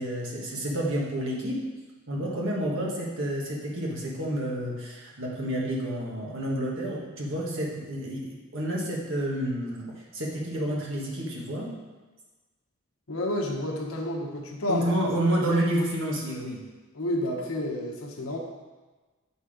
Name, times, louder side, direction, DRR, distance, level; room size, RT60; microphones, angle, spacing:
voice 1, 0.0-1.6 2.1-11.7 14.7-16.6, right 1 dB, 60° right, -3 dB, 1.7 m, -29 dB
voice 2, 13.1-14.9 16.9-18.4, left 1 dB, 75° left, 0 dB, 1.2 m, -30 dB
8.1 x 4.2 x 5.1 m, 1.3 s
head